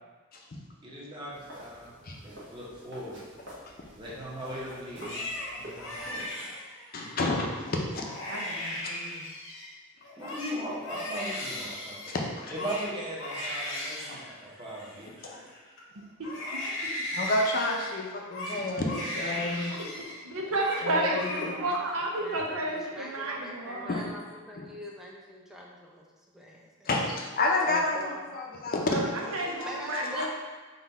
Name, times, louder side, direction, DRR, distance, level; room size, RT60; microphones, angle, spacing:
voice 1, 0.8-1.9 2.2-3.2 4.0-5.2 5.6-6.4 10.2-12.1 12.5-15.3 22.3-22.4, equal, 20° right, -6 dB, 0.9 m, -39 dB
sound 1, 1.3-6.3, equal, 60° right, 1.1 m, -47 dB
Crying sobbing, 4.8-7.1 7.6-7.8 8.0-9.7 10.0-15.8 16.2-20.2 20.4-20.8 21.1-21.8 22.2-22.8, left 1 dB, 70° left, 0.9 m, -37 dB
voice 2, 6.9-8.0 12.1-12.5 15.2-15.4 17.1-19.7 20.8-21.5 23.9-24.0 24.6-24.7 26.9-29.7 30.0-30.3, left 2 dB, 45° left, 0 dB, 0.6 m, -30 dB
voice 3, 8.3-9.2 16.2-17.1 19.7-19.9 20.2-24.0 28.9-30.3, right 1 dB, 85° right, -1 dB, 0.7 m, -32 dB
voice 4, 20.7-21.9 22.2-26.0 26.3-26.9 27.7-28.4 29.6-30.3, equal, ahead, -3 dB, 0.4 m, -44 dB
4.0 x 2.3 x 4.1 m, 1.3 s
head